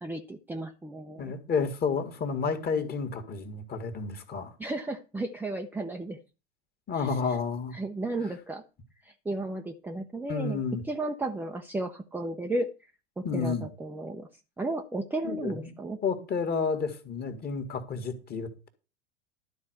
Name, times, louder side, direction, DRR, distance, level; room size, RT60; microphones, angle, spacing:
voice 1, 0.0-1.3 4.6-6.2 7.0-7.1 7.7-8.6 9.0-10.6 10.9-12.7 13.2-14.3 14.6-16.0, right 2 dB, 5° right, 0.6 m, -34 dB
voice 2, 1.2-4.5 6.9-7.7 10.3-10.8 13.2-13.7 15.2-15.7 16.0-18.7, left 5 dB, 25° left, 1.9 m, -31 dB
12.0 x 4.2 x 7.9 m
hypercardioid pair, 100°, 36 cm